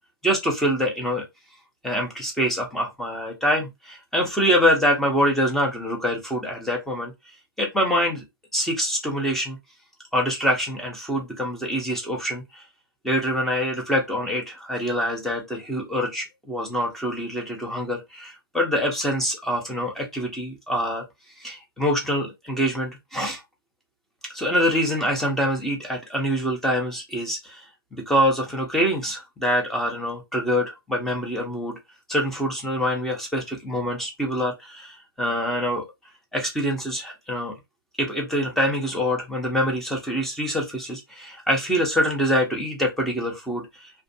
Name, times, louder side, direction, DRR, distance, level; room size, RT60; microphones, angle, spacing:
voice 1, 0.2-1.2 1.8-7.1 7.6-8.2 8.5-9.6 10.1-12.6 13.0-21.0 21.4-23.4 24.3-27.6 27.9-31.8 32.1-35.8 36.3-37.5 38.0-44.0, equal, ahead, 0.8 m, -25 dB
2.4 x 2.2 x 2.7 m
hypercardioid pair, 130°, 13 cm